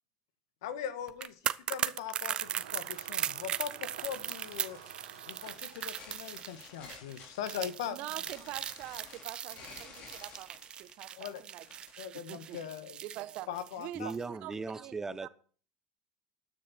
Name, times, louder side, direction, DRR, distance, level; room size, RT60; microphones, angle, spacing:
voice 1, 0.6-4.8 5.2-8.0 11.1-11.4 12.0-13.0 13.5-14.1, left 9 dB, 75° left, 1.6 m, -40 dB
sound 1, 1.1-14.2 14.5-14.7, right 9 dB, 40° right, 0.7 m, -38 dB
sound 2, 2.4-6.4, right 10 dB, 85° right, 2.1 m, -51 dB
sound 3, 4.1-12.0, left 5 dB, 50° left, 4.4 m, -53 dB
voice 2, 7.8-11.6 12.3-12.6 13.0-14.9 15.2-15.3, right 15 dB, 60° right, 1.0 m, -45 dB
voice 3, 13.9-15.3, right 4 dB, 15° right, 1.0 m, -38 dB
13.5 x 9.9 x 4.4 m
hypercardioid pair, 95°, 3 cm